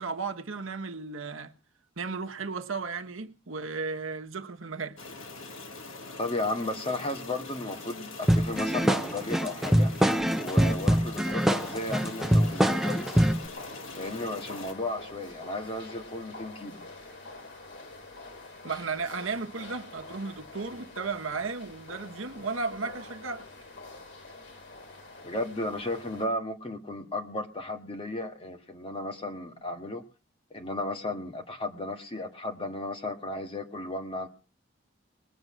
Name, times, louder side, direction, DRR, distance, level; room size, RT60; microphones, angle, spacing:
voice 1, 0.0-1.5 2.0-5.0 18.6-23.5, right 4 dB, 80° right, 1.2 m, -34 dB
sound 1, 5.0-14.7, left 3 dB, 85° left, 1.7 m, -43 dB
voice 2, 6.2-9.9 10.4-13.3 13.9-16.8 25.2-30.0 30.5-34.3, left 2 dB, 30° left, 1.8 m, -34 dB
sound 2, 8.3-13.5, equal, ahead, 0.7 m, -24 dB
sound 3, 11.2-26.3, left 2 dB, 65° left, 3.0 m, -46 dB
20.5 x 7.9 x 6.3 m
head